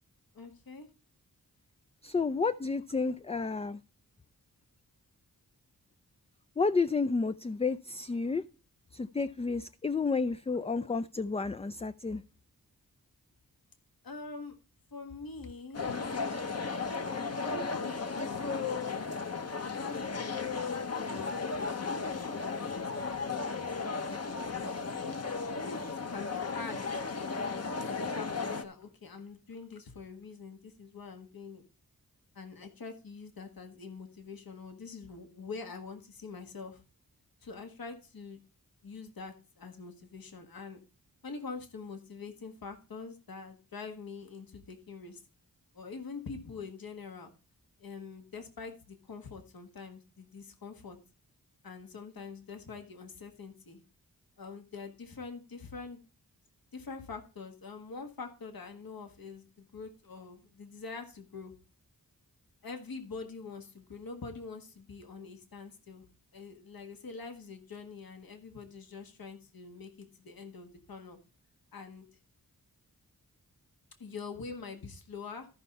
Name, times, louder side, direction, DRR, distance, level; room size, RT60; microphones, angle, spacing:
voice 1, 0.3-0.9 14.0-14.5 14.9-15.8 17.4-19.4 19.6-20.5 20.8-24.7 26.1-26.8 27.2-31.6 32.3-36.8 37.4-38.4 38.8-40.8 41.2-45.2 45.7-47.3 47.8-51.0 51.6-53.8 54.4-56.0 56.7-61.5 62.6-66.0 66.3-71.2 71.7-72.1 74.0-75.5, left 4 dB, 70° left, 5 dB, 1.6 m, -45 dB
voice 2, 2.0-3.8 6.6-8.4 8.9-12.2, left 4 dB, 20° left, 12 dB, 0.4 m, -31 dB
sound 1, 15.7-28.6, left 4 dB, 45° left, 1.0 m, -35 dB
14.0 x 5.4 x 4.1 m, 0.34 s
wide cardioid pair, 65°, 36 cm